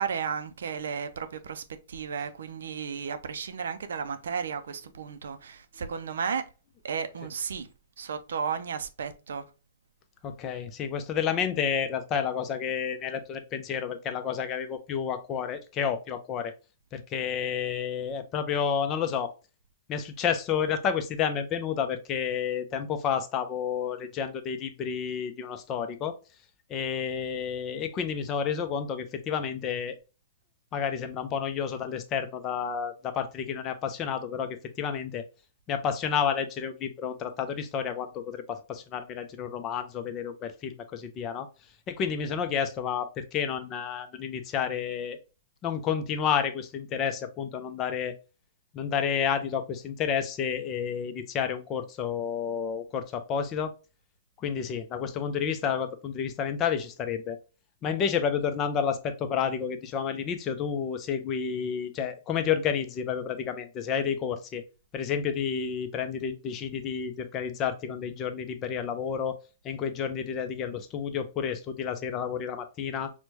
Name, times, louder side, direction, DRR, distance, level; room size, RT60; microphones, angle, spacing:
voice 1, 0.0-6.5 6.8-7.7 8.0-9.4, right 6 dB, 75° right, 0.4 m, -33 dB
voice 2, 10.2-16.5 16.9-19.3 19.9-26.2 26.7-30.0 30.7-35.2 35.7-41.5 41.9-45.2 45.6-48.1 48.7-53.7 54.4-57.4 57.8-64.6 64.9-69.4 69.6-73.1, left 7 dB, 30° left, 0.5 m, -30 dB
4.3 x 2.2 x 2.7 m
hypercardioid pair, 120°, 0 cm